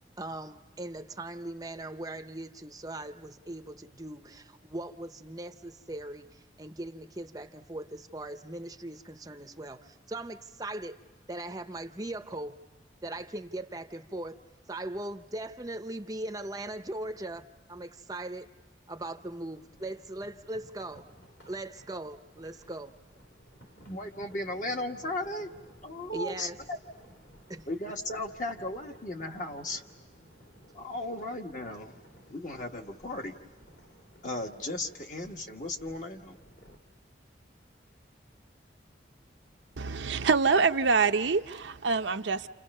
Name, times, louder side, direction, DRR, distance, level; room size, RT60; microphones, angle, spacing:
voice 1, 0.2-11.0 11.3-12.6 13.0-14.4 14.7-18.5 18.9-21.1 21.5-22.9 26.1-26.6 27.5-27.7, right 1 dB, 20° right, 0.7 m, -39 dB
sound 1, 18.9-36.8, equal, 60° left, 3.2 m, -57 dB
voice 2, 23.9-25.5 25.8-26.8 27.7-29.8 30.7-31.9 32.3-33.4 34.2-36.4, left 1 dB, 40° left, 1.5 m, -36 dB
voice 3, 39.8-42.5, right 5 dB, 80° right, 0.7 m, -25 dB
29.5 x 29.0 x 5.5 m
head